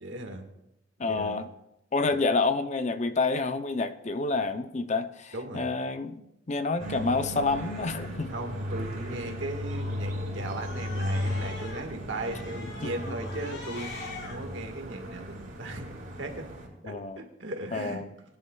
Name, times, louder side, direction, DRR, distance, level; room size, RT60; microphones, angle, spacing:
voice 1, 0.0-0.4 1.0-1.4 2.1-2.2 5.3-5.8 8.3-14.0 14.3-15.9 16.2-16.5 16.8-18.0, right 2 dB, 75° right, 1.6 m, -37 dB
voice 2, 1.0-1.5 1.9-8.3 12.8-13.2 16.8-17.2 17.7-18.1, left 3 dB, 35° left, 0.6 m, -29 dB
sound 1, 6.8-16.7, equal, 45° right, 4.0 m, -36 dB
Cat, 9.5-11.8 12.2-14.3, left 3 dB, 65° left, 3.4 m, -43 dB
21.5 x 10.5 x 2.3 m
head